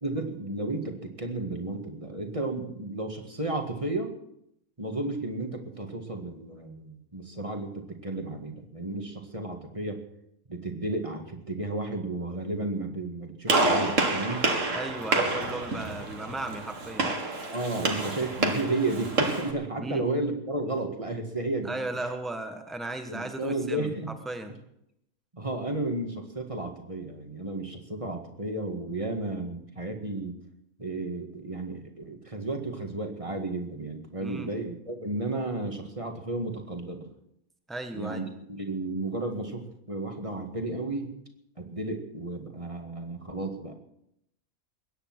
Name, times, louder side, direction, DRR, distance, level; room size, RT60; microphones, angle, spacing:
voice 1, 0.0-4.1 4.8-10.0 10.5-14.5 17.5-21.8 23.1-24.1 25.3-30.4 30.8-37.1 37.9-41.1 41.6-43.7, right 2 dB, 25° right, 3 dB, 1.9 m, -33 dB
Gunshot gunfire, 13.5-19.5, right 2 dB, 60° right, 2.4 m, -28 dB
voice 2, 14.7-17.1 19.8-20.0 21.6-23.9 24.2-24.5 34.2-34.5 37.7-38.3, right 2 dB, ahead, 6 dB, 1.3 m, -35 dB
22.0 x 9.8 x 6.2 m, 0.79 s
omnidirectional pair, 1.5 m